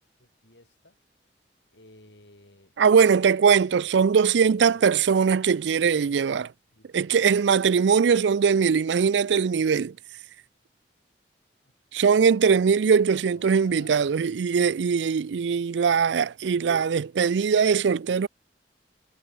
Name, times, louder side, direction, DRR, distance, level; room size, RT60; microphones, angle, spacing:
voice 1, 0.2-1.0 1.7-5.3 6.7-6.9 13.3-14.1, left 1 dB, 80° left, 6.1 m, -54 dB
voice 2, 2.8-6.5 6.9-10.0 11.9-18.3, right 6 dB, 85° right, 0.4 m, -21 dB
head